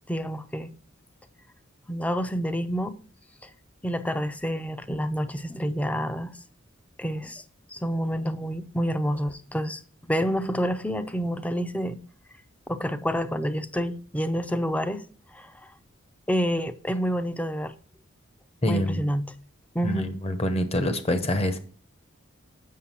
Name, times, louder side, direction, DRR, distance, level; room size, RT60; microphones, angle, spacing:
voice 1, 0.1-0.7 1.9-3.0 3.4-3.5 3.8-6.3 7.0-7.4 7.7-9.8 10.1-12.0 12.7-15.1 15.3-15.5 16.3-17.7 18.7-19.2 19.7-20.1, equal, 5° left, 0.5 m, -28 dB
voice 2, 18.6-19.0 19.8-21.6, left 1 dB, 30° left, 0.9 m, -26 dB
7.4 x 6.6 x 4.5 m
head